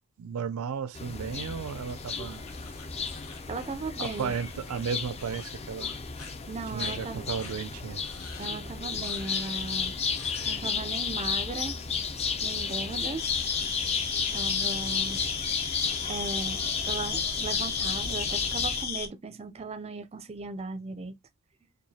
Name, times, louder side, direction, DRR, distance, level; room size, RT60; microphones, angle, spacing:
voice 1, 0.2-2.4 4.0-5.9 6.7-8.0, right 6 dB, 85° right, 0.4 m, -34 dB
sound 1, 0.9-18.8, left 5 dB, 30° left, 0.5 m, -33 dB
sound 2, 1.9-4.9 5.2-5.5 5.8-6.3 6.8-7.0 7.4-7.6 8.0-8.6 9.0-9.7 10.1-10.7, left 5 dB, 90° left, 0.9 m, -47 dB
voice 2, 3.5-4.3 6.5-7.2 8.4-9.9 10.4-11.8 12.4-13.2 14.3-15.2 16.1-21.1, right 3 dB, 30° right, 0.5 m, -37 dB
sound 3, 13.2-19.1, left 6 dB, 45° left, 0.9 m, -33 dB
4.7 x 2.3 x 2.7 m
head